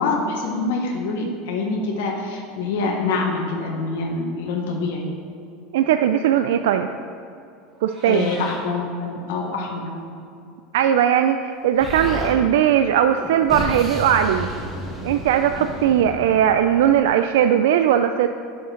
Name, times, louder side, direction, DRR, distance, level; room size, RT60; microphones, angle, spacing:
voice 1, 0.0-5.1 8.0-9.9 16.0-16.1, left 3 dB, 90° left, 0 dB, 1.2 m, -25 dB
voice 2, 5.7-6.9 7.8-8.3 10.7-14.5 15.0-18.3, right 9 dB, 85° right, 8 dB, 0.3 m, -19 dB
Meow, 7.7-8.6, right 1 dB, 20° right, 1.6 m, -40 dB
Explosion, 11.8-12.4 13.2-17.0, equal, ahead, 1.1 m, -32 dB
9.2 x 6.5 x 4.4 m, 2.6 s
supercardioid pair, 165°, 0 cm